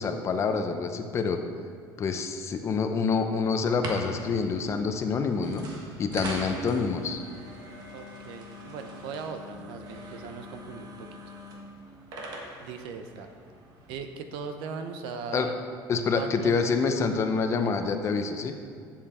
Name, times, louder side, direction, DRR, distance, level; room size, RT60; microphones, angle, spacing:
voice 1, 0.0-1.4 2.0-5.7 6.0-7.2 15.3-15.5 15.9-18.5, left 5 dB, 35° left, 6 dB, 0.7 m, -27 dB
sound 1, 3.6-13.9, right 1 dB, 55° right, 1.5 m, -42 dB
voice 2, 7.9-11.1 12.6-13.3 13.9-15.5 16.1-16.6, right 5 dB, 85° right, 7 dB, 0.8 m, -39 dB
9.0 x 7.4 x 4.3 m, 2.2 s
cardioid pair, 145°, 8 cm